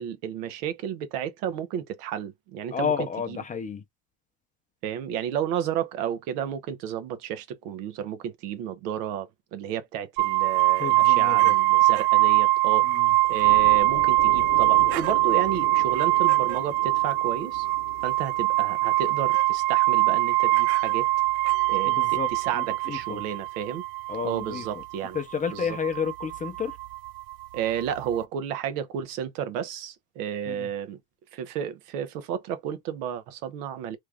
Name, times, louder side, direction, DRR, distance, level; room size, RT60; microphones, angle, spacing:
voice 1, 0.0-2.9 3.3-3.4 4.8-12.9 13.3-17.7 18.0-21.1 21.7-21.9 22.3-23.8 24.2-25.2 25.5-25.8 27.5-31.0 31.3-34.0, right 9 dB, 85° right, 1.0 m, -32 dB
voice 2, 2.7-3.8 10.7-11.5 12.8-13.2 21.9-23.2 24.1-24.8 25.1-26.8 30.5-30.7, left 6 dB, 20° left, 0.5 m, -31 dB
sound 1, 10.2-28.2, right 18 dB, 55° right, 0.5 m, -23 dB
sound 2, 13.4-19.5, left 9 dB, 50° left, 1.0 m, -42 dB
3.2 x 2.4 x 3.5 m
cardioid pair, 135°, 45 cm